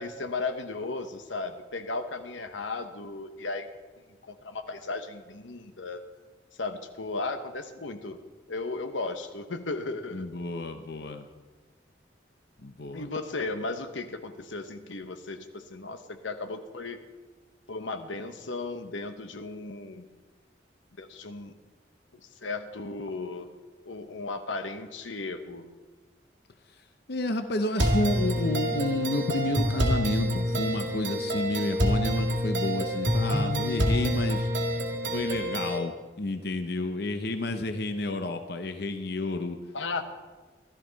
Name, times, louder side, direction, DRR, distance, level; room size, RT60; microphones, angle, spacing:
voice 1, 0.0-3.7 4.3-6.0 6.6-8.2 8.5-10.3 12.9-17.0 17.7-20.1 21.0-21.5 22.1-23.5 23.9-25.7 39.7-40.0, left 3 dB, 90° left, 8 dB, 1.0 m, -35 dB
voice 2, 10.1-11.3 12.6-13.1 26.7-26.8 27.1-34.5 35.1-39.6, left 2 dB, 60° left, 7 dB, 0.7 m, -31 dB
sound 1, 27.8-35.8, equal, 90° right, 2.2 m, -27 dB
16.5 x 13.0 x 4.0 m, 1.3 s
head